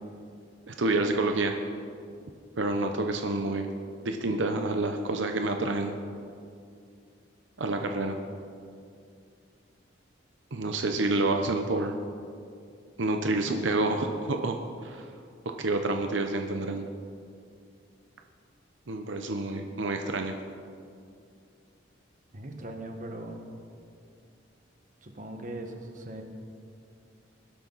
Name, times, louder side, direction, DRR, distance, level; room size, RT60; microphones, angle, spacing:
voice 1, 0.7-1.5 2.6-3.7 4.0-6.0 7.6-8.2 10.5-12.0 13.0-14.6 14.8-15.0 15.6-16.9 18.9-20.3, right 2 dB, 80° right, 5 dB, 0.9 m, -28 dB
voice 2, 22.3-23.5 25.0-26.2, right 1 dB, 40° right, 3 dB, 1.5 m, -40 dB
21.5 x 12.0 x 4.1 m, 2.4 s
head